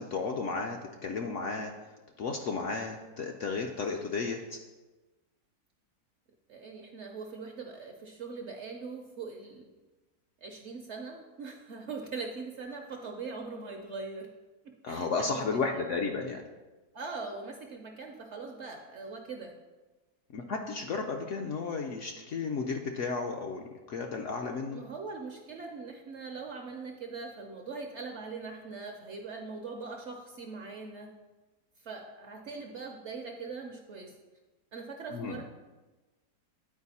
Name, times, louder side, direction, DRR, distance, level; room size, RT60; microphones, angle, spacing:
voice 1, 0.0-1.7 2.2-4.6 14.8-16.4 20.3-23.6 23.9-24.8 35.1-35.4, left 4 dB, 65° left, 2 dB, 0.7 m, -33 dB
voice 2, 6.5-9.7 10.4-14.3 14.6-15.8 16.9-19.6 24.7-31.1 31.8-34.2 34.7-35.4, right 4 dB, 60° right, 3 dB, 0.7 m, -41 dB
9.6 x 4.5 x 4.1 m, 1.2 s
omnidirectional pair, 1.7 m